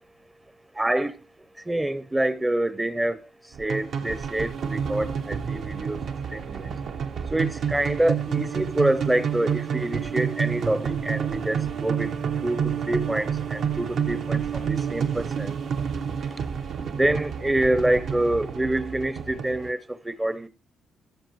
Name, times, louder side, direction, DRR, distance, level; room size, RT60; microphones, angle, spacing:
voice 1, 0.8-1.1 1.7-3.2 3.6-6.0 6.3-6.6 7.3-12.1 12.4-15.5 17.0-19.8 20.1-20.5, right 1 dB, 10° right, 0.7 m, -26 dB
sound 1, 3.5-19.7, right 7 dB, 65° right, 1.0 m, -29 dB
15.5 x 7.0 x 3.1 m
cardioid pair, 90°, 0 cm